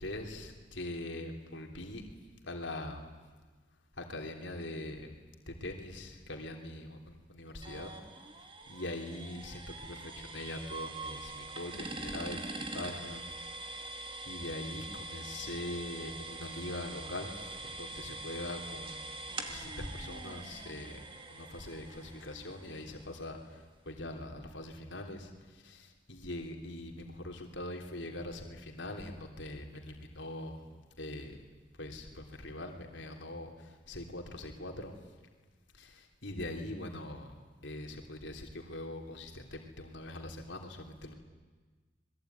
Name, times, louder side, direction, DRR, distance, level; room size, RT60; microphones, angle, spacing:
voice 1, 0.0-2.0 2.4-3.1 4.0-5.1 5.5-7.9 8.7-13.3 13.6-13.9 14.2-21.0 21.3-30.6 31.0-31.4 31.8-34.9 35.7-37.3 37.6-41.1, left 1 dB, 75° left, 3 dB, 3.3 m, -42 dB
sound 1, 7.6-23.3, right 2 dB, 25° right, 2.3 m, -44 dB
27.0 x 21.5 x 9.4 m, 1.3 s
head